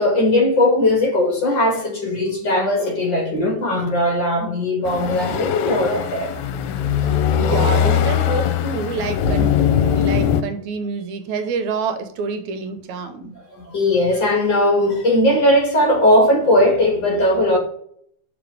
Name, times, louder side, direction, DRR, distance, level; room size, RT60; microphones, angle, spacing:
voice 1, 0.0-6.3 13.2-17.6, left 1 dB, 45° left, 2.0 m, -18 dB
sound 1, 4.9-10.4, left 8 dB, 80° left, 2.0 m, -20 dB
voice 2, 7.4-13.3, right 5 dB, 80° right, 2.2 m, -27 dB
6.0 x 4.6 x 4.8 m
omnidirectional pair, 3.3 m